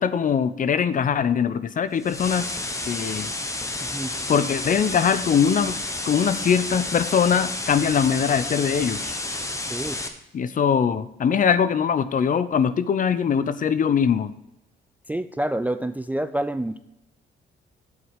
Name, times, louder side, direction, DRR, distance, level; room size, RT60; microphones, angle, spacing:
voice 1, 0.0-2.6 2.9-3.3 4.3-5.8 6.1-9.2 10.3-14.3, left 7 dB, 40° left, 15 dB, 0.5 m, -22 dB
sound 1, 2.0-10.1, left 2 dB, 15° left, 1.0 m, -30 dB
voice 2, 3.8-4.1 9.7-10.0 15.1-16.8, right 1 dB, 10° right, 11 dB, 0.3 m, -27 dB
8.1 x 4.8 x 7.0 m, 0.88 s
cardioid pair, 90°, 20 cm